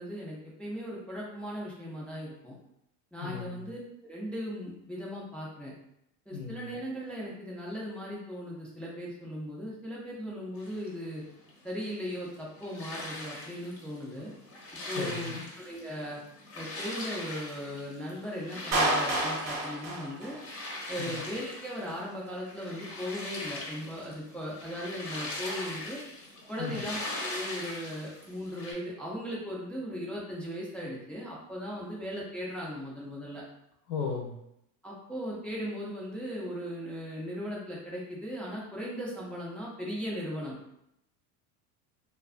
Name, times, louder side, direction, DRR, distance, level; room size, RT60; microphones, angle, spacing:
voice 1, 0.0-2.6 3.1-5.7 6.3-11.2 11.6-14.3 14.9-16.2 16.5-20.4 20.9-26.0 26.5-33.4 34.8-40.6, equal, 5° left, -5 dB, 0.4 m, -38 dB
voice 2, 3.2-3.6 6.3-6.7 15.0-15.4 21.0-21.2 26.6-26.8 33.9-34.3, left 5 dB, 65° left, 1 dB, 0.7 m, -36 dB
sound 1, 10.6-28.7, left 2 dB, 30° left, 0.7 m, -41 dB
Clapping, 18.7-20.7, right 1 dB, 35° right, 0.7 m, -29 dB
2.3 x 2.3 x 2.4 m, 0.79 s
supercardioid pair, 100°, 44 cm